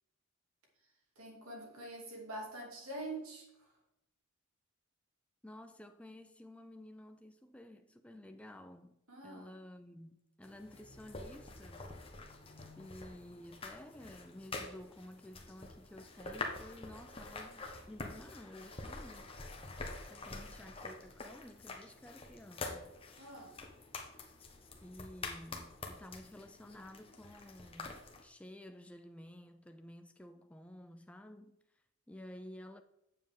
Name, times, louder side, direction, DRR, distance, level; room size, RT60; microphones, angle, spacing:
voice 1, 0.8-3.8 9.1-9.5 23.2-23.6, right 2 dB, 85° right, 2.9 m, -46 dB
voice 2, 5.4-12.0 12.8-19.3 20.1-22.9 24.8-32.8, left 1 dB, 5° left, 0.3 m, -53 dB
sound 1, 10.4-28.2, left 3 dB, 25° left, 1.0 m, -47 dB
8.6 x 7.2 x 3.7 m
head